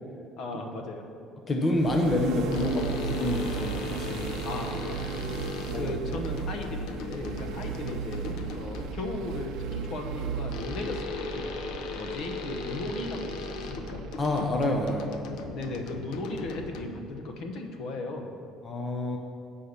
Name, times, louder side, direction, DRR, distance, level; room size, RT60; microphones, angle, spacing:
voice 1, 0.4-1.0 4.4-14.0 15.5-18.3, left 2 dB, 55° left, 3 dB, 1.0 m, -37 dB
voice 2, 1.5-4.3 5.7-5.9 14.2-15.2 18.6-19.2, left 1 dB, 20° left, 1 dB, 0.6 m, -28 dB
sound 1, 1.7-15.6, right 7 dB, 65° right, 0.6 m, -36 dB
sound 2, 2.5-9.1 10.5-17.2, left 4 dB, 75° left, 0.7 m, -38 dB
Bass guitar, 2.6-8.8, right 2 dB, 15° right, 2.0 m, -46 dB
8.3 x 5.6 x 6.6 m, 2.4 s
cardioid pair, 160°, 0 cm